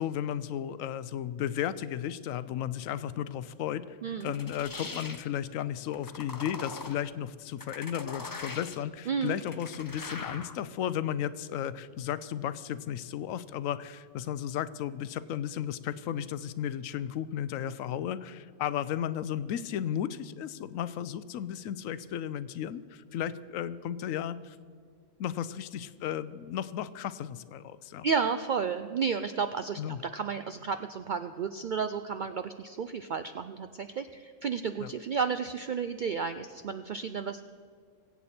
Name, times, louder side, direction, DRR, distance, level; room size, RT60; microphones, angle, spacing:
voice 1, 0.0-4.0 4.2-24.6 25.2-28.1 29.8-30.0 34.8-34.9, left 10 dB, 80° left, 15 dB, 1.0 m, -34 dB
voice 2, 4.0-4.3 9.1-9.4 28.0-37.4, right 6 dB, 80° right, 10 dB, 0.4 m, -32 dB
sound 1, 4.2-5.3 5.9-7.1 7.6-8.9 9.2-10.6, left 3 dB, 30° left, 0.4 m, -41 dB
22.5 x 8.5 x 4.3 m, 2.1 s
omnidirectional pair, 1.4 m